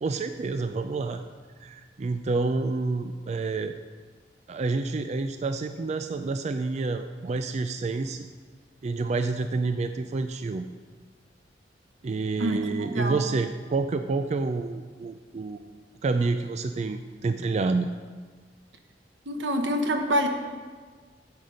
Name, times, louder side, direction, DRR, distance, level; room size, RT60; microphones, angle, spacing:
voice 1, 0.0-1.2 1.6-3.8 4.5-8.3 8.8-10.7 12.0-15.6 16.0-17.9, right 3 dB, 40° right, 8 dB, 0.4 m, -28 dB
voice 2, 12.4-13.2 19.3-20.3, equal, 90° right, 5 dB, 1.1 m, -26 dB
9.5 x 7.9 x 5.1 m, 1.5 s
head